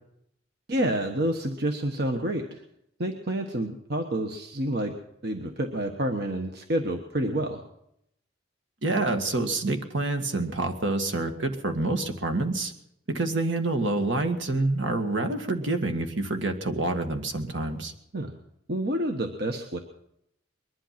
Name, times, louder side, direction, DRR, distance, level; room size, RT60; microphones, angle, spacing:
voice 1, 0.7-2.6 3.0-4.9 5.2-7.6 18.1-18.4 18.7-19.8, right 1 dB, 55° right, 4 dB, 1.3 m, -28 dB
voice 2, 8.8-12.7 13.1-17.9, right 2 dB, 75° right, 6 dB, 1.9 m, -27 dB
21.5 x 11.5 x 5.9 m, 0.76 s
head